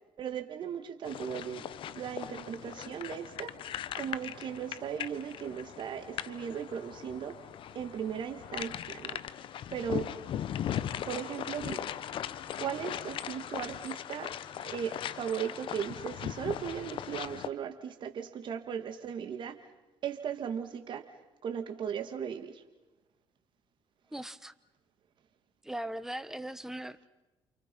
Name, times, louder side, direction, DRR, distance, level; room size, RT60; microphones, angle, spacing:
voice 1, 0.2-3.5 4.0-7.4 7.7-9.2 9.7-10.2 11.1-11.9 12.6-14.3 14.6-19.6 20.0-21.1 21.4-22.6, right 8 dB, 50° right, 7 dB, 2.1 m, -37 dB
sound 1, 1.0-17.5, left 10 dB, 60° left, 1.2 m, -39 dB
voice 2, 24.1-24.5 25.6-27.1, right 1 dB, 5° right, 14 dB, 1.2 m, -39 dB
30.0 x 28.0 x 5.5 m, 1.0 s
cardioid pair, 100°, 10 cm